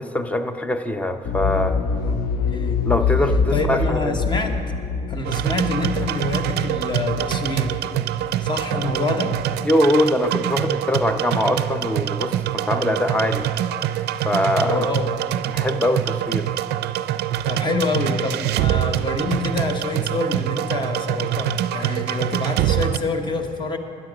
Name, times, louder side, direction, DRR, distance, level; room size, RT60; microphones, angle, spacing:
voice 1, 0.0-1.8 2.8-4.1 9.7-13.4 14.2-14.9 15.5-16.5, left 1 dB, 10° left, 8 dB, 0.6 m, -22 dB
sound 1, 1.2-9.0 9.3-9.4, left 5 dB, 65° left, 0.6 m, -25 dB
voice 2, 2.0-2.9 3.5-4.6 5.1-7.8 8.4-9.4 14.6-15.2 17.4-23.8, left 3 dB, 25° left, 6 dB, 1.1 m, -26 dB
sound 2, 5.2-23.0, right 12 dB, 75° right, 0.4 m, -25 dB
12.5 x 9.9 x 5.0 m, 2.5 s
cardioid pair, 110°, 17 cm